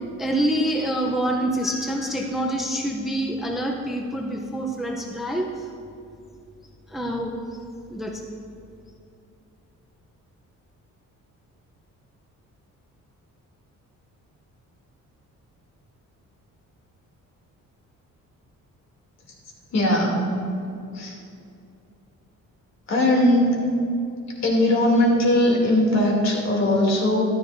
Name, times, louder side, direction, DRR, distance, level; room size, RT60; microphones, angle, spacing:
voice 1, 0.2-5.7 6.9-7.4 7.9-8.2, right 1 dB, ahead, 1 dB, 0.6 m, -26 dB
voice 2, 19.7-20.3 20.9-21.2 22.9-23.6 24.4-27.2, left 1 dB, 55° left, -2 dB, 2.6 m, -20 dB
14.0 x 12.0 x 2.6 m, 2.6 s
cardioid pair, 160°, 32 cm